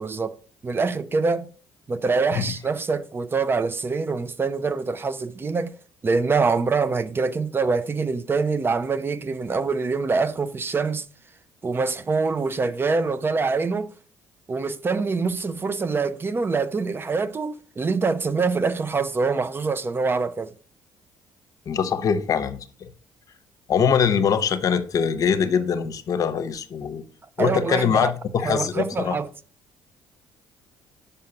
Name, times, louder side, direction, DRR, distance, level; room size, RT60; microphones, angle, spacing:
voice 1, 0.0-1.5 1.9-5.7 6.0-11.1 11.6-13.9 14.5-20.5 27.4-28.1 28.4-29.3, right 4 dB, 30° right, 0.6 m, -25 dB
voice 2, 21.7-22.9 23.7-27.0 27.4-29.2, left 7 dB, 55° left, 0.8 m, -23 dB
5.7 x 5.5 x 5.4 m
supercardioid pair, 60°, 7 cm